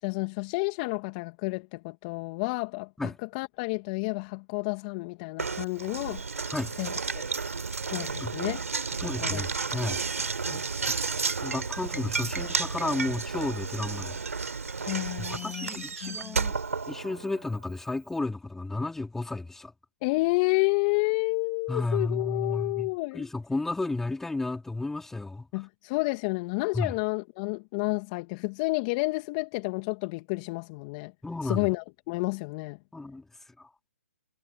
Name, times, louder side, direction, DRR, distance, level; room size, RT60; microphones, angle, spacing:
voice 1, 0.0-2.9 3.3-6.2 6.8-7.2 7.9-8.6 8.9-9.4 9.7-9.8 10.4-10.6 14.8-16.4 20.0-23.3 25.5-31.1 31.4-32.8, left 28 dB, 30° left, 2.4 m, -30 dB
Knock, 5.4-17.5, right 4 dB, 80° right, 3.8 m, -32 dB
voice 2, 9.0-10.0 10.9-11.0 11.4-14.2 15.2-16.5 16.9-19.7 21.7-25.5 26.7-26.9 31.2-31.7 32.9-33.3 33.6-33.7, left 2 dB, 5° left, 3.8 m, -32 dB
hypercardioid pair, 135°, 8 cm